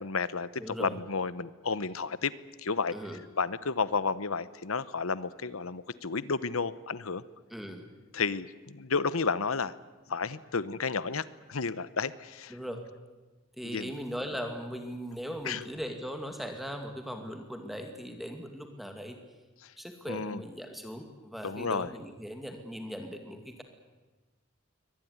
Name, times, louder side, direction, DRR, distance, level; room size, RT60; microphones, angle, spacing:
voice 1, 0.0-2.3 2.6-2.9 3.4-7.2 8.1-9.7 10.1-11.2 11.5-12.6 13.6-13.9 15.4-15.6 20.1-20.4 21.4-21.9, left 4 dB, 90° left, 16 dB, 1.0 m, -32 dB
voice 2, 0.6-1.0 2.9-3.2 7.5-7.9 12.5-12.8 13.6-19.2 19.8-23.6, equal, ahead, 5 dB, 2.1 m, -39 dB
23.5 x 19.5 x 9.6 m, 1.2 s
head